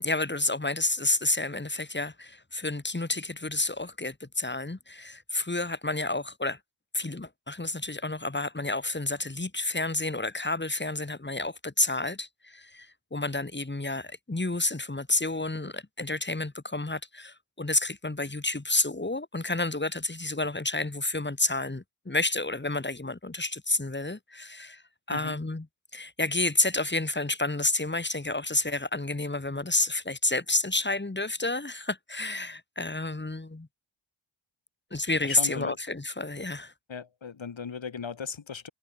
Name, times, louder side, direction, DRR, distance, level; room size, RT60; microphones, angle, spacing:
voice 1, 0.0-6.6 6.9-25.7 25.9-33.7 34.9-36.7, left 2 dB, 20° left, 3.6 m, -30 dB
voice 2, 35.2-35.8 36.9-38.7, left 6 dB, 70° left, 5.2 m, -37 dB
cardioid pair, 50°, 47 cm